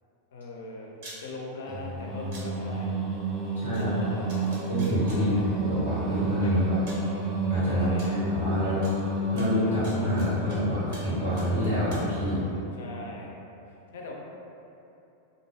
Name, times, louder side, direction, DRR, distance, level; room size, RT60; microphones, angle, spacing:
voice 1, 0.3-0.9 1.2-2.9 3.6-4.5 5.1-5.5 6.4-6.6 7.7-8.2 12.8-13.3 13.7-14.1, left 2 dB, 60° left, -1 dB, 0.4 m, -40 dB
sound 1, 1.0-1.2 2.3-2.4 3.7-3.8 4.3-5.2 6.3-6.4 6.9-7.1 8.0-8.1 8.8-8.9 9.4-10.6 10.9-11.1 11.4-12.0, right 2 dB, 50° right, 0.7 m, -46 dB
Singing, 1.7-12.8, right 1 dB, 15° right, 0.5 m, -31 dB
voice 2, 3.5-3.9 4.7-5.3 5.6-6.8 7.5-8.8 9.3-12.4, equal, 90° right, -12 dB, 1.4 m, -27 dB
2.5 x 2.2 x 3.0 m, 2.8 s
figure-of-eight pair, 90°, 0 cm